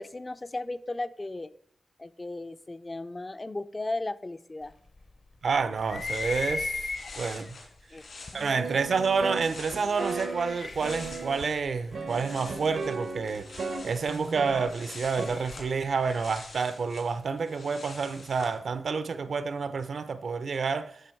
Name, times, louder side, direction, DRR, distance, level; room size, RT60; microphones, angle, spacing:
voice 1, 0.0-1.5 2.0-4.7 7.9-8.0 8.3-8.6, left 2 dB, 25° left, 0.4 m, -36 dB
voice 2, 5.4-7.6 8.3-13.5 13.8-21.0, right 5 dB, 70° right, 0.7 m, -29 dB
sound 1, 5.8-11.6 11.9-18.6, left 3 dB, 75° left, 3.1 m, -47 dB
sound 2, 5.8-7.5 8.3-8.4 9.7-12.6 14.7-16.4, left 3 dB, 50° left, 0.8 m, -37 dB
sound 3, 8.6-11.5 11.9-14.7 15.2-15.3, right 4 dB, 90° right, 1.2 m, -36 dB
12.0 x 5.5 x 4.5 m
wide cardioid pair, 110°, 0 cm